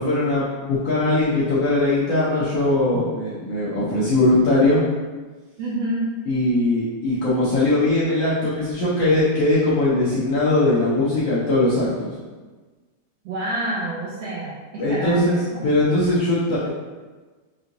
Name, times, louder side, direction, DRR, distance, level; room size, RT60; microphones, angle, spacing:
voice 1, 0.0-4.8 6.3-12.2 14.8-15.4 15.6-16.7, left 2 dB, 70° left, -9 dB, 1.5 m, -20 dB
voice 2, 5.6-6.2 13.2-15.5, right 1 dB, 80° right, -6 dB, 1.5 m, -28 dB
5.5 x 2.7 x 2.6 m, 1.3 s
omnidirectional pair, 3.6 m